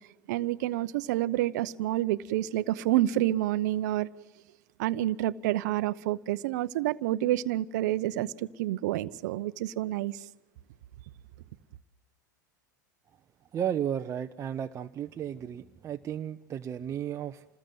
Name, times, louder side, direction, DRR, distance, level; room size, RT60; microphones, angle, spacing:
voice 1, 0.3-4.1 4.8-10.2, right 14 dB, 65° right, 0.8 m, -28 dB
voice 2, 13.5-17.5, right 9 dB, 30° right, 0.8 m, -34 dB
27.5 x 20.0 x 7.9 m
hypercardioid pair, 95°, 10 cm